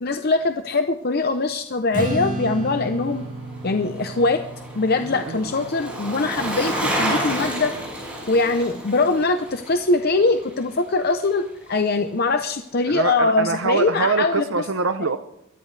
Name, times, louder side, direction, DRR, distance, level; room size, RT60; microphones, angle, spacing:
voice 1, 0.0-3.2 3.6-4.4 4.8-7.7 8.3-14.6, left 3 dB, 50° left, 7 dB, 0.7 m, -22 dB
Strum, 1.9-8.2, right 2 dB, 40° right, 2.4 m, -33 dB
Bicycle, 3.0-11.4 11.7-11.8, right 1 dB, 5° right, 6.4 m, -31 dB
voice 2, 5.1-5.5 12.9-15.2, right 4 dB, 75° right, 8 dB, 0.8 m, -24 dB
23.0 x 14.5 x 3.3 m, 0.79 s
head